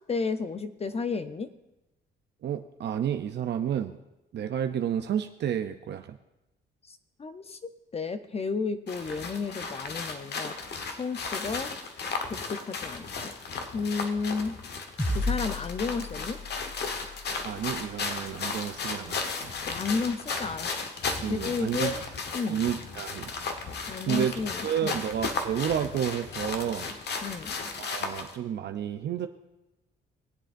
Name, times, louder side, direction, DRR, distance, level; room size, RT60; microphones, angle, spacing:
voice 1, 0.1-1.5 6.9-7.6 7.9-10.5 11.0-11.7 12.3-13.3 13.7-14.5 15.1-16.4 19.7-20.7 21.3-22.0 22.3-22.6 23.9-25.0 27.2-27.5, left 4 dB, 30° left, 10 dB, 0.6 m, -32 dB
voice 2, 2.4-3.9 4.3-6.2 17.4-19.5 21.2-21.9 22.5-23.3 24.1-24.3 24.6-26.9 27.8-29.3, right 9 dB, 60° right, 7 dB, 0.6 m, -30 dB
sound 1, 8.9-28.3, left 4 dB, 60° left, 1.2 m, -35 dB
sound 2, 15.0-19.6, left 2 dB, 10° left, 2.6 m, -36 dB
21.5 x 7.6 x 2.6 m, 0.95 s
cardioid pair, 90°, 20 cm